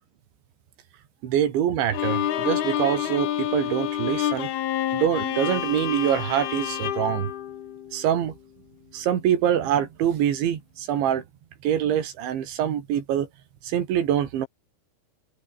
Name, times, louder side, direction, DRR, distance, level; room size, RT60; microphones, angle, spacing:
voice 1, 1.2-4.5 4.9-7.3 7.9-8.3 8.9-11.2 11.6-13.3 13.6-14.5, right 10 dB, 80° right, 4.9 m, -24 dB
Bowed string instrument, 1.9-8.2, left 11 dB, 65° left, 3.4 m, -28 dB
omnidirectional pair, 5.3 m